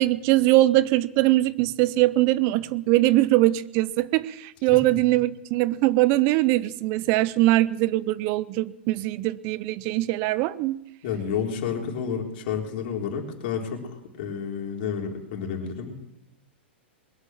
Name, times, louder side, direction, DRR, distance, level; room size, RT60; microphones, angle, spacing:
voice 1, 0.0-10.8, right 17 dB, 45° right, 18 dB, 0.6 m, -22 dB
voice 2, 11.0-13.8 14.2-15.9, left 7 dB, 55° left, 1 dB, 3.6 m, -30 dB
21.5 x 8.3 x 7.4 m, 0.86 s
hypercardioid pair, 115°, 6 cm